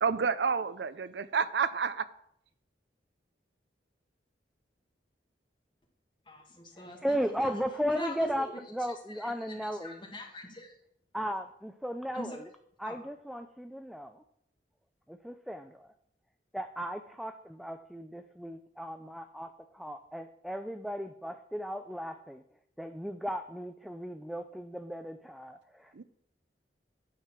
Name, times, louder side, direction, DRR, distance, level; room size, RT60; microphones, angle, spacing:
voice 1, 0.0-2.1 25.9-26.0, right 6 dB, 75° right, 15 dB, 0.5 m, -29 dB
voice 2, 6.3-7.6 7.9-8.6 9.2-10.7 12.1-12.3 12.8-13.0, left 1 dB, 30° left, 2 dB, 1.8 m, -44 dB
voice 3, 6.8-10.0 11.1-12.5 12.8-14.2 15.1-15.9 16.5-22.4 22.8-26.0, equal, ahead, 8 dB, 0.4 m, -36 dB
8.9 x 6.5 x 5.9 m, 0.72 s
head